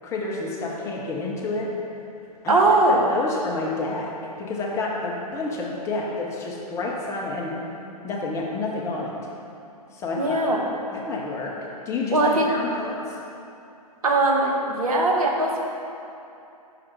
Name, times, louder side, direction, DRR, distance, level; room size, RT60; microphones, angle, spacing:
voice 1, 0.0-1.7 2.4-2.5 2.9-4.1 4.4-7.5 8.0-9.1 9.9-10.6 10.9-11.5 11.9-13.2, left 3 dB, 15° left, -3 dB, 0.6 m, -29 dB
voice 2, 2.5-3.0 10.1-10.6 12.1-12.5 14.0-15.6, right 2 dB, 65° right, -1 dB, 1.0 m, -20 dB
5.7 x 4.9 x 4.4 m, 2.7 s
figure-of-eight pair, 115°, 20 cm